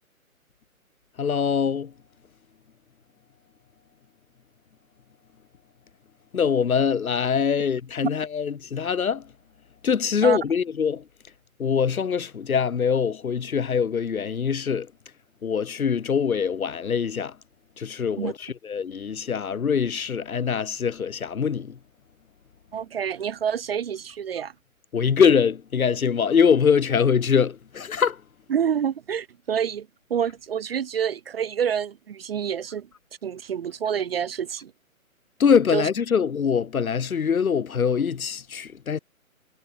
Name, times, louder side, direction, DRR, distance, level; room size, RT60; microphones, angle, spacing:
voice 1, 1.2-1.9 6.3-9.2 9.8-11.0 11.6-14.9 15.4-17.3 17.8-21.7 24.9-28.2 35.4-39.0, left 6 dB, 75° left, 1.3 m, -23 dB
voice 2, 22.7-24.5 28.5-32.9 33.2-34.7 35.7-35.9, right 8 dB, 40° right, 1.8 m, -27 dB
hypercardioid pair, 155°, 43 cm